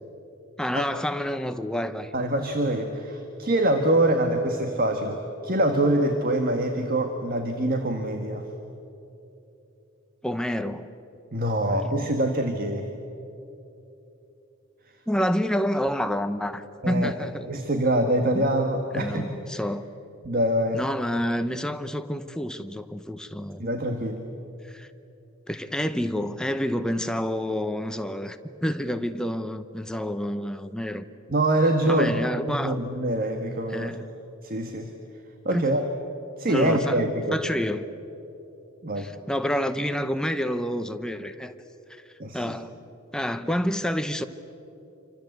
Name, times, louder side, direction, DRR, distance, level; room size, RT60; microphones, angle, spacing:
voice 1, 0.6-2.1 10.2-10.9 11.6-11.8 15.1-17.6 18.3-18.5 18.9-19.8 20.7-23.6 24.6-24.9 25.5-31.1 31.9-32.8 33.7-34.1 35.5-35.7 36.5-37.0 37.3-37.9 39.0-41.5 41.9-42.0 42.3-42.7 43.1-44.2, equal, 5° left, 0.8 m, -28 dB
voice 2, 2.1-5.2 5.4-8.4 11.3-12.9 16.8-17.1 17.5-19.3 20.2-20.9 23.6-24.2 31.3-32.1 32.5-33.9 34.4-34.9 35.4-35.8 36.4-37.4 38.8-39.1 42.2-42.4, right 1 dB, 40° right, 1.6 m, -24 dB
27.5 x 25.5 x 8.0 m
head